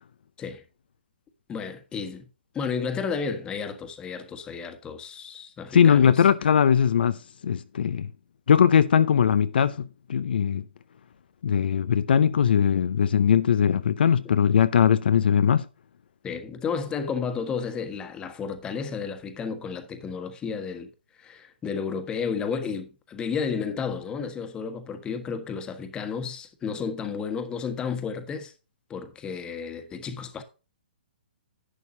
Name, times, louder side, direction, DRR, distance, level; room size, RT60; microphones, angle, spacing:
voice 1, 1.5-2.2 2.5-6.2 16.2-20.9 21.2-28.5 28.9-30.4, left 6 dB, 15° left, 1.5 m, -32 dB
voice 2, 5.7-7.2 7.4-8.1 8.5-10.6 11.4-15.7, left 8 dB, 65° left, 0.6 m, -20 dB
11.5 x 9.3 x 2.7 m
hypercardioid pair, 135°, 6 cm